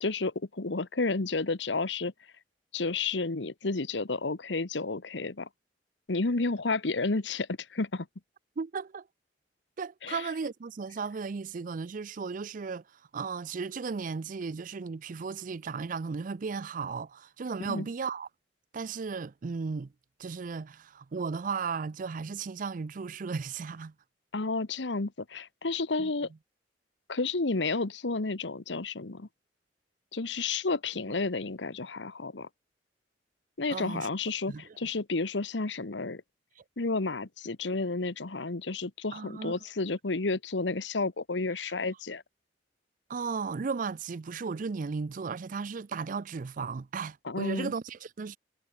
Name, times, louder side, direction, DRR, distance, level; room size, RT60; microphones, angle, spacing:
voice 1, 0.0-2.1 2.7-5.5 6.1-8.1 10.0-10.3 17.7-17.9 24.3-26.3 27.1-29.3 30.1-32.5 33.6-36.2 36.8-42.2 47.2-47.7, left 3 dB, 80° left, 1.2 m, -31 dB
voice 2, 8.6-9.1 9.8-12.8 13.1-18.3 18.7-19.9 20.2-23.9 26.0-26.1 33.7-34.1 34.5-34.6 39.1-39.5 43.1-48.4, right 5 dB, 45° right, 0.4 m, -35 dB
head